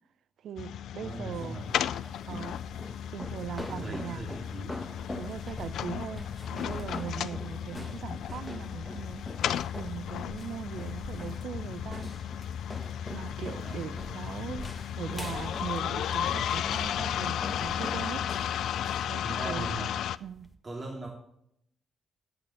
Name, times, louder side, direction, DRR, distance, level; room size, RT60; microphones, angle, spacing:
voice 1, 0.4-1.6 2.3-2.7 3.1-4.3 5.2-9.3 9.7-12.1 13.1-18.2 19.1-19.7 20.2-20.5, right 9 dB, 65° right, 0.5 m, -40 dB
sound 1, 0.6-20.2, left 9 dB, 65° left, 0.4 m, -34 dB
voice 2, 1.0-1.7 3.6-4.8 13.6-13.8 17.7-18.2 19.2-19.9 20.6-21.1, right 2 dB, 35° right, 3.2 m, -40 dB
sound 2, 1.3-20.5, left 1 dB, 20° left, 1.8 m, -44 dB
11.0 x 8.5 x 6.0 m
hypercardioid pair, 40°, 0 cm